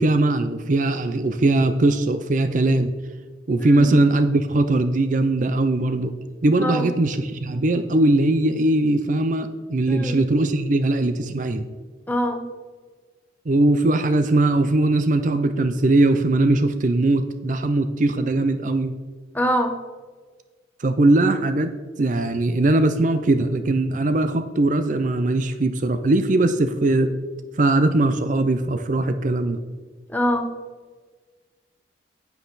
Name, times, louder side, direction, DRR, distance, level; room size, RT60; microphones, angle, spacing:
voice 1, 0.0-3.0 3.5-6.2 6.4-11.7 13.5-18.9 20.8-27.1 27.6-29.6, right 2 dB, 45° right, 9 dB, 0.5 m, -20 dB
voice 2, 3.6-3.9 6.6-6.9 9.9-10.2 12.1-12.5 19.3-19.8 30.1-30.5, equal, 10° left, 4 dB, 1.0 m, -23 dB
9.8 x 8.3 x 4.0 m, 1.4 s
head